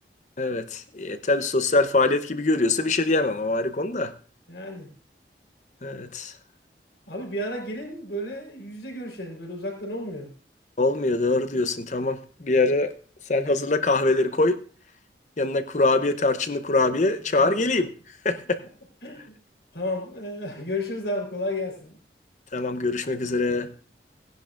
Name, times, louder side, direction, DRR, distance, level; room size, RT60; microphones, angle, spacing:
voice 1, 0.4-4.1 5.8-6.3 10.8-12.9 13.3-14.6 15.4-17.9 18.2-18.6 22.5-23.7, left 2 dB, 40° left, 0.7 m, -23 dB
voice 2, 4.5-4.9 7.1-10.3 17.1-17.6 19.0-19.3 19.7-22.0, left 1 dB, 80° left, 3.9 m, -32 dB
18.5 x 10.5 x 2.5 m
head